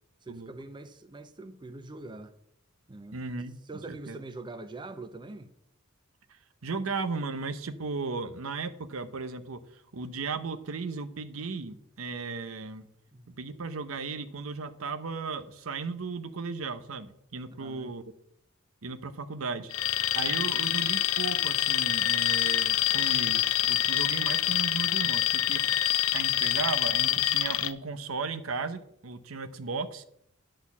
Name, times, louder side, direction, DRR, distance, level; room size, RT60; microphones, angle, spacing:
voice 1, 0.2-2.3 2.9-3.2 3.7-5.5 13.1-13.2 17.6-17.9, right 2 dB, 20° right, 0.5 m, -43 dB
voice 2, 3.1-3.6 3.9-4.2 6.6-12.9 13.3-18.0 18.8-19.7 20.1-30.1, right 4 dB, 80° right, 0.8 m, -36 dB
Alarm, 19.7-27.7, left 12 dB, 90° left, 0.5 m, -26 dB
10.0 x 4.2 x 7.2 m
head